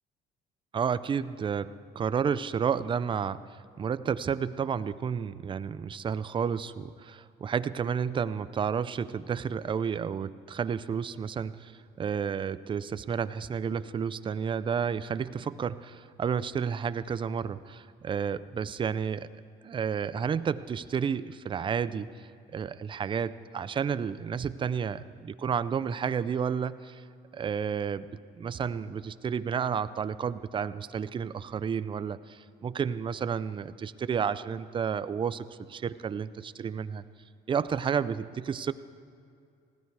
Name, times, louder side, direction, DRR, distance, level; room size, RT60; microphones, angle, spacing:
voice 1, 0.7-11.7 12.0-19.3 19.6-27.0 27.3-28.1 28.4-37.0 37.5-38.7, right 7 dB, 30° right, 14 dB, 0.5 m, -31 dB
19.5 x 15.5 x 4.8 m, 2.4 s
cardioid pair, 110°, 17 cm